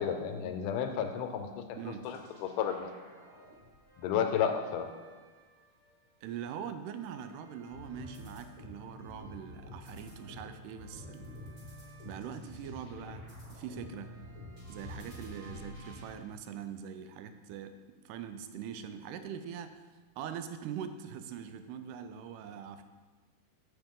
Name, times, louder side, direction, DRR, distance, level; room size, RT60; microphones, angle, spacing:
voice 1, 0.0-1.6 2.1-2.9 4.0-4.9, left 8 dB, 85° left, 6 dB, 2.1 m, -32 dB
sound 1, 2.0-6.1 6.5-16.1, left 1 dB, 25° right, 2.6 m, -49 dB
voice 2, 6.2-11.4 12.1-13.2 13.5-14.1 14.7-17.7 18.1-19.8 20.2-22.8, right 8 dB, 85° right, 9 dB, 2.1 m, -42 dB
7.0 x 6.8 x 3.7 m, 1.4 s
omnidirectional pair, 3.7 m